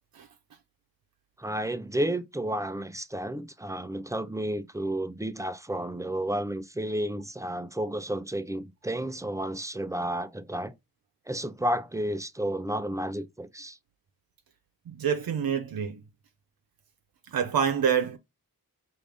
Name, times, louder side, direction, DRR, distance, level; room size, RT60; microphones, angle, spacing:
voice 1, 1.4-10.7 11.3-13.8, right 1 dB, 10° right, 0.4 m, -31 dB
voice 2, 14.9-16.0 17.3-18.2, right 7 dB, 80° right, 0.6 m, -27 dB
4.9 x 2.6 x 3.3 m
wide cardioid pair, 115°, 35 cm